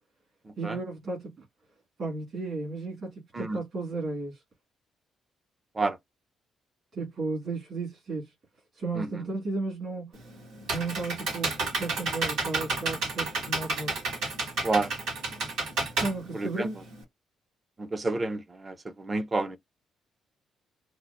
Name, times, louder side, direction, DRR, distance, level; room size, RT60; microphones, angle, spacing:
voice 1, 0.6-1.4 2.0-4.4 6.9-8.3 8.7-10.3 10.7-13.9 16.0-16.9, right 3 dB, 55° right, 2.0 m, -34 dB
Computer keyboard, 10.1-17.0, right 3 dB, 85° right, 2.5 m, -31 dB
voice 2, 17.8-18.7 19.1-19.6, right 3 dB, 30° right, 0.6 m, -28 dB
4.4 x 2.1 x 2.5 m
cardioid pair, 90°, 0 cm